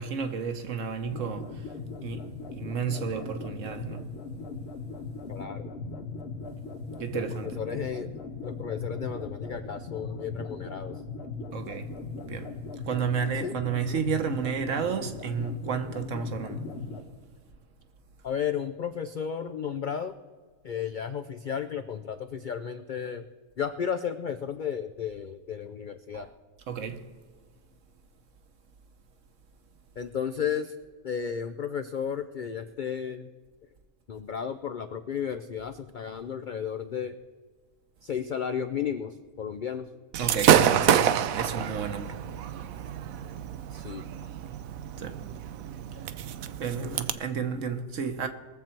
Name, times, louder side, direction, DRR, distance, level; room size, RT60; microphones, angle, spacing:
voice 1, 0.0-4.1 7.0-8.1 11.5-12.0 12.3-12.6 12.8-16.7 26.1-26.3 26.7-27.1 40.2-42.2 45.0-45.2 45.9-46.1 46.6-48.3, right 6 dB, 65° right, 1.3 m, -32 dB
sound 1, 1.0-17.0, left 3 dB, 45° left, 1.5 m, -39 dB
voice 2, 5.3-5.7 7.3-8.1 8.4-11.0 13.4-13.6 18.2-20.2 20.6-23.3 23.6-26.3 30.0-30.7 31.0-33.3 34.1-37.2 38.0-39.9 43.7-44.3, left 7 dB, 65° left, 0.4 m, -33 dB
Gunshot gunfire / Fireworks, 40.1-47.1, right 9 dB, 85° right, 1.0 m, -27 dB
21.5 x 7.5 x 4.5 m
omnidirectional pair, 1.4 m